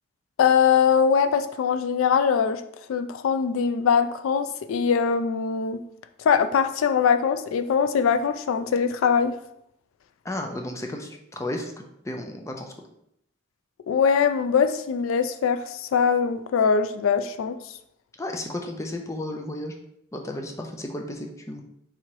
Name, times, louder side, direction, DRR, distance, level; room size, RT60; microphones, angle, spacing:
voice 1, 0.4-2.6 2.9-5.8 6.2-9.4 13.9-17.6, left 6 dB, 80° left, 9 dB, 0.3 m, -22 dB
voice 2, 10.2-12.7 18.2-19.7 20.1-21.6, left 1 dB, 15° left, 3 dB, 0.4 m, -33 dB
3.8 x 2.9 x 4.6 m, 0.74 s
head